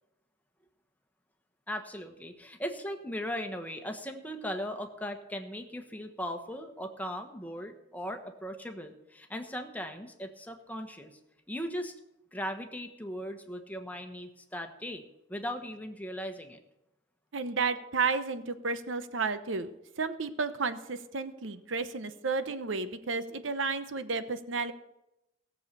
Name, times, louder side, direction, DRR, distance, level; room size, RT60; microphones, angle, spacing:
voice 1, 1.7-11.1 11.5-11.9 12.3-15.0 15.3-16.6, equal, 10° left, 5 dB, 1.2 m, -38 dB
voice 2, 17.3-19.7 20.0-24.7, right 4 dB, 80° right, 11 dB, 0.9 m, -32 dB
17.0 x 7.3 x 6.7 m, 0.89 s
head